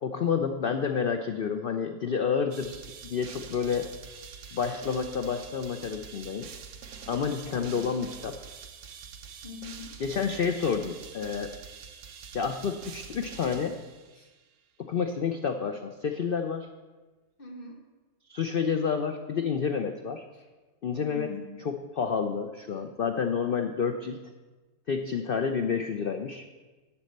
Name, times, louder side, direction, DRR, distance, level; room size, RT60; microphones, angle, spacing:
voice 1, 0.0-3.9 4.5-6.5 7.1-8.4 10.0-11.5 12.3-13.8 14.8-16.7 18.3-20.2 20.8-21.3 22.0-24.2 24.9-26.5, left 6 dB, 90° left, 6 dB, 0.4 m, -29 dB
sound 1, 2.5-14.4, right 6 dB, 60° right, 0.9 m, -45 dB
voice 2, 7.5-7.9 9.4-9.9 14.1-14.3 17.4-17.8 20.3-20.5 21.0-21.6 22.7-22.8, left 3 dB, 35° left, 1 dB, 1.6 m, -42 dB
11.5 x 4.2 x 7.9 m, 1.2 s
omnidirectional pair, 1.7 m